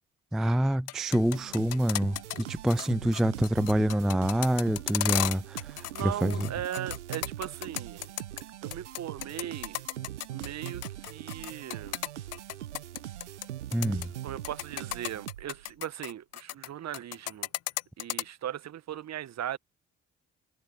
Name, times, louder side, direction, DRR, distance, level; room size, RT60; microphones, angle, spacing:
voice 1, 0.3-6.5 13.7-14.1, right 1 dB, ahead, 0.3 m, -27 dB
sound 1, 0.7-2.4 2.7-2.9 3.1-6.0 6.3-8.4 8.7-13.5 13.7-14.1 14.4-16.7 16.9-18.2, left 15 dB, 50° left, 0.6 m, -34 dB
sound 2, 1.1-15.7, right 12 dB, 85° right, 0.8 m, -41 dB
voice 2, 5.9-8.1 8.6-9.8 10.3-12.0 14.2-17.5 18.0-19.6, right 10 dB, 50° right, 1.5 m, -38 dB
figure-of-eight pair, 40°, 34 cm